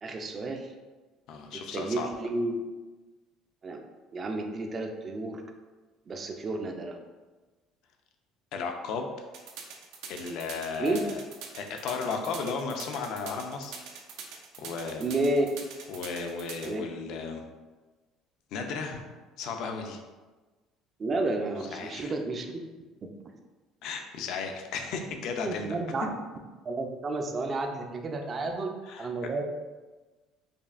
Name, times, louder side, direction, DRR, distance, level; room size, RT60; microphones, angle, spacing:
voice 1, 0.0-0.7 1.5-2.5 3.6-3.8 4.1-5.4 6.1-7.0 10.8-11.0 15.0-15.5 16.6-16.8 21.0-22.5 25.4-26.1 26.6-28.7 29.0-29.4, right 2 dB, 35° right, 4 dB, 0.4 m, -31 dB
voice 2, 1.3-2.1 8.5-9.3 10.1-11.2 11.6-13.8 14.6-15.1 15.9-17.4 18.5-19.1 19.4-20.0 21.7-22.1 23.8-25.8 28.9-29.1, left 5 dB, 65° left, 4 dB, 0.5 m, -34 dB
sound 1, 9.3-16.7, right 6 dB, 80° right, 0.5 m, -43 dB
5.1 x 2.4 x 2.4 m, 1.3 s
cardioid pair, 115°, 0 cm